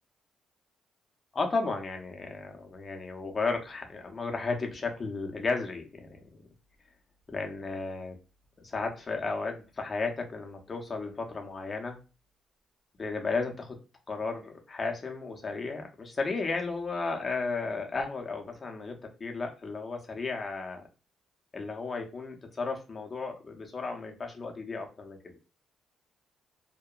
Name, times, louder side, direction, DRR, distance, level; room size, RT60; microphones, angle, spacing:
voice 1, 1.3-6.2 7.3-8.2 8.6-12.0 13.0-13.8 14.1-20.8 21.5-25.2, left 3 dB, 35° left, 3 dB, 0.6 m, -34 dB
2.8 x 2.1 x 2.3 m, 0.33 s
cardioid pair, 90°, 0 cm